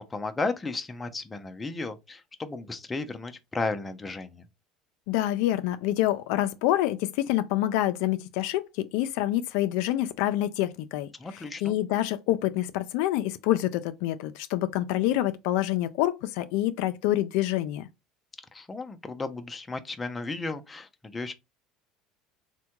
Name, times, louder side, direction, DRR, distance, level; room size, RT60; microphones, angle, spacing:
voice 1, 0.1-4.4 11.2-11.7 18.5-21.3, left 3 dB, 15° left, 0.5 m, -34 dB
voice 2, 5.1-17.9, left 14 dB, 75° left, 0.3 m, -27 dB
3.5 x 2.1 x 2.9 m
supercardioid pair, 110°, 0 cm